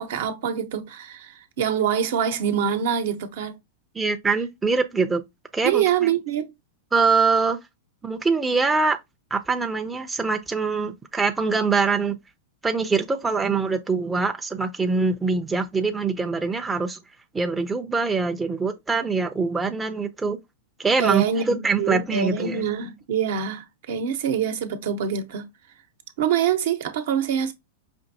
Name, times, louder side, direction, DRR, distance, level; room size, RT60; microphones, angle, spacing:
voice 1, 0.0-3.6 5.6-6.5 21.0-25.5 26.2-27.5, right 8 dB, 70° right, 0.8 m, -25 dB
voice 2, 4.0-5.2 5.5-6.1 6.9-7.6 8.0-9.0 9.3-12.2 12.6-17.0 17.3-20.4 20.8-22.6, right 4 dB, 10° right, 0.5 m, -23 dB
5.2 x 2.6 x 2.7 m
hypercardioid pair, 120°, 0 cm